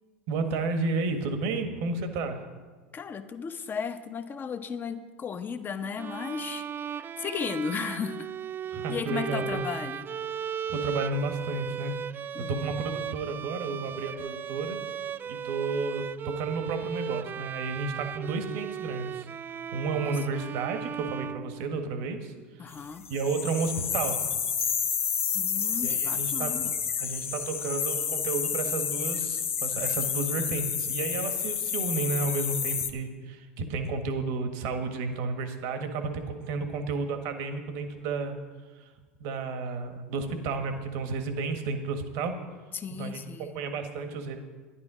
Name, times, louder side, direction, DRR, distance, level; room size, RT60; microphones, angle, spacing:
voice 1, 0.3-2.4 8.7-9.6 10.7-11.9 12.5-14.8 15.3-19.3 19.7-22.8 23.1-24.4 25.8-26.6 27.0-38.4 38.7-38.9 39.2-42.3 42.9-44.4, right 4 dB, 60° right, 7 dB, 1.5 m, -32 dB
voice 2, 2.9-8.3 8.9-10.1 12.3-12.7 20.3-20.5 22.6-23.1 25.3-26.8 42.7-43.6, left 6 dB, 30° left, 8 dB, 1.0 m, -35 dB
Bowed string instrument, 6.0-22.0, right 8 dB, 30° right, 0.3 m, -36 dB
sound 1, 23.0-32.9, left 7 dB, 90° left, 0.9 m, -30 dB
12.0 x 10.5 x 5.0 m, 1.4 s
hypercardioid pair, 85°, 7 cm